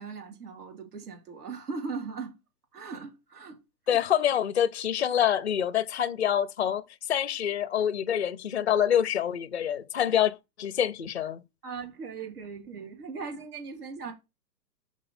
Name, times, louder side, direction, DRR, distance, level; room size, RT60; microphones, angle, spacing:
voice 1, 0.0-2.3 2.7-3.6 3.9-4.0 11.6-14.1, right 5 dB, 65° right, 4.0 m, -39 dB
voice 2, 3.9-6.8 7.1-11.4, left 10 dB, 45° left, 0.5 m, -26 dB
6.5 x 4.9 x 4.1 m
hypercardioid pair, 175°, 50 cm